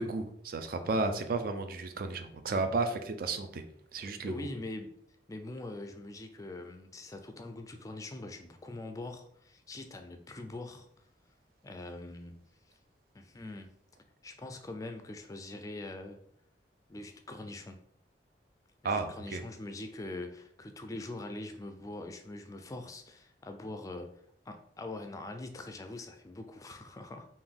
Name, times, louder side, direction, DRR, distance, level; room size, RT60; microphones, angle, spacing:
voice 1, 0.0-3.6 3.9-4.5 18.8-19.4, right 3 dB, 55° right, 8 dB, 0.4 m, -33 dB
voice 2, 4.0-4.9 5.3-10.9 11.6-12.4 13.1-13.7 14.2-16.2 16.9-17.8 18.8-24.1 24.5-27.3, left 2 dB, 20° left, 6 dB, 0.4 m, -43 dB
3.8 x 2.6 x 3.5 m, 0.69 s
head